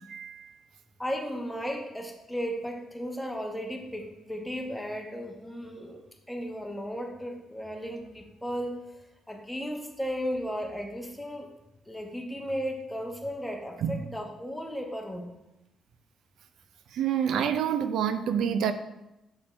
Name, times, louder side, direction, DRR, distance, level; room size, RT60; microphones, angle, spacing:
voice 1, 0.1-0.5 13.8-14.0 16.9-18.7, right 8 dB, 75° right, 10 dB, 0.4 m, -27 dB
voice 2, 1.0-8.8 9.3-11.5 11.9-15.3, equal, 5° left, 1 dB, 1.1 m, -35 dB
7.1 x 4.1 x 3.3 m, 0.91 s
cardioid pair, 90°, 0 cm